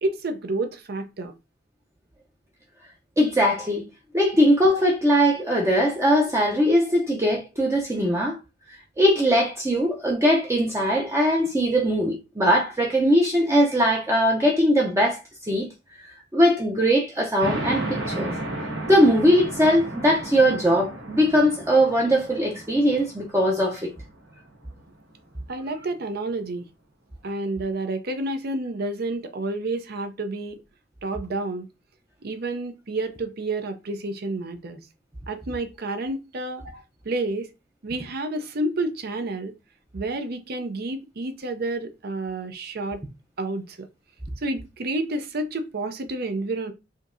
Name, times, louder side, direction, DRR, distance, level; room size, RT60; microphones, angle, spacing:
voice 1, 0.0-1.3 25.5-26.7 27.2-30.6 31.0-31.7 32.2-34.8 35.3-36.6 37.0-37.5 37.8-39.5 39.9-43.0 43.4-43.8 44.4-46.7, right 2 dB, 55° right, 0.6 m, -29 dB
voice 2, 3.2-3.8 4.1-8.4 9.0-15.2 15.5-15.7 16.0-18.3 18.8-23.9, equal, 15° right, 0.6 m, -20 dB
sound 1, 17.4-24.6, right 1 dB, 75° right, 1.2 m, -34 dB
5.0 x 2.7 x 2.6 m
head